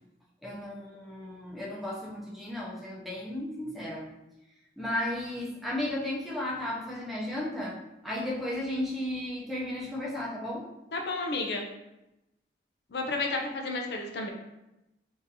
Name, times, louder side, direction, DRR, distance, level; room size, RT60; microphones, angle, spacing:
voice 1, 0.4-4.1 4.8-10.7, left 1 dB, ahead, -6 dB, 0.6 m, -34 dB
voice 2, 10.9-11.7 12.9-14.3, left 3 dB, 65° left, 2 dB, 0.4 m, -31 dB
3.7 x 2.6 x 2.8 m, 0.92 s
head